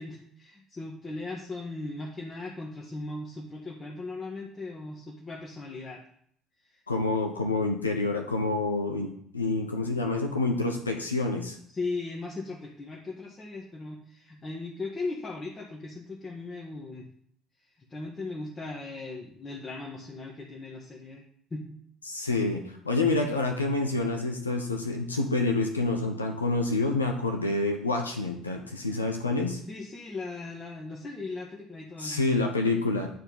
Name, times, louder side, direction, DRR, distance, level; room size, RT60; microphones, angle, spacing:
voice 1, 0.0-6.0 6.6-6.8 11.7-17.1 17.9-21.2 21.5-21.8 29.7-32.2, left 3 dB, 25° left, -3 dB, 1.5 m, -38 dB
voice 2, 6.9-11.6 22.1-29.6 32.0-33.1, left 3 dB, 85° left, 3 dB, 0.7 m, -28 dB
9.3 x 4.4 x 5.6 m, 0.66 s
figure-of-eight pair, 55°, 0 cm